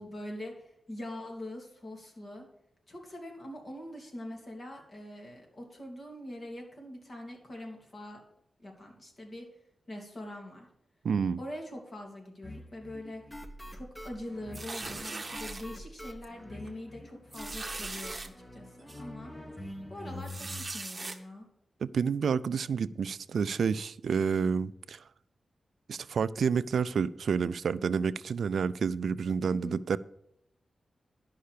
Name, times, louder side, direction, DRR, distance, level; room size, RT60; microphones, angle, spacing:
voice 1, 0.0-2.5 2.9-8.2 8.6-9.5 9.9-10.7 11.4-13.2 13.7-19.3 19.9-21.5 29.5-29.8, left 1 dB, 40° left, 1 dB, 3.0 m, -43 dB
voice 2, 11.0-11.4 21.8-25.0 25.9-30.0, right 6 dB, 80° right, 17 dB, 0.3 m, -29 dB
sound 1, 12.4-20.7, left 1 dB, 10° left, 1.1 m, -45 dB
sound 2, 14.5-15.6 16.2-16.4 16.7-16.8 17.3-18.3 18.9-19.0 20.2-21.2, right 3 dB, 30° right, 1.0 m, -39 dB
11.5 x 5.6 x 6.6 m, 0.77 s
wide cardioid pair, 100°, 0 cm